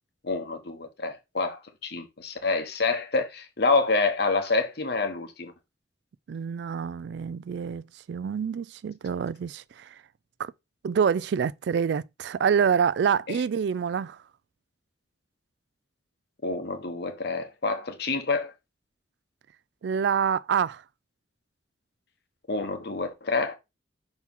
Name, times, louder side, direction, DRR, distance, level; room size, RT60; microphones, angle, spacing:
voice 1, 0.2-5.5 16.4-18.5 22.5-23.6, left 3 dB, 60° left, 1.1 m, -27 dB
voice 2, 6.3-9.9 10.4-10.5 10.8-14.2 19.8-20.8, right 7 dB, 65° right, 0.3 m, -26 dB
5.9 x 4.4 x 3.6 m
head